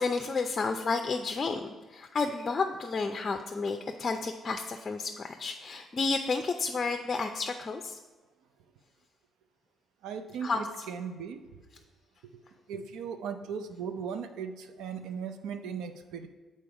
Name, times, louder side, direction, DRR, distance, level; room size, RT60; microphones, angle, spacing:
voice 1, 0.0-8.0 10.4-10.7, left 4 dB, 35° left, 5 dB, 0.5 m, -31 dB
voice 2, 10.0-11.4 12.7-16.3, right 6 dB, 90° right, 8 dB, 0.5 m, -37 dB
6.9 x 4.3 x 4.7 m, 1.2 s
cardioid pair, 90°, 0 cm